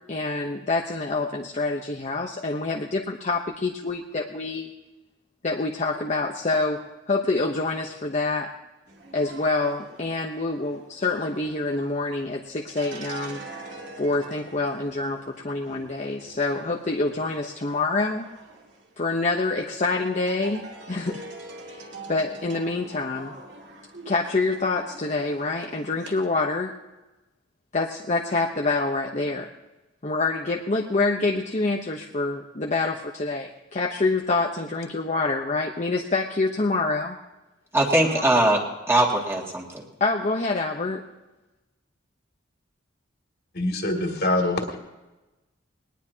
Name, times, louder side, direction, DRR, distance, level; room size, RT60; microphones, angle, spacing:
voice 1, 0.1-4.7 5.4-8.5 9.1-13.4 14.0-18.3 19.0-21.2 21.7-23.3 24.1-26.7 27.7-29.5 30.0-37.2 38.0-38.2 40.0-41.0, left 3 dB, 40° left, 1 dB, 0.9 m, -26 dB
sound 1, 8.9-26.3, right 2 dB, 65° right, 2.2 m, -45 dB
voice 2, 37.7-39.8, right 1 dB, 15° right, -1 dB, 2.3 m, -21 dB
voice 3, 43.5-44.8, left 1 dB, 55° left, 1 dB, 2.7 m, -24 dB
21.0 x 19.5 x 2.9 m, 1.1 s
head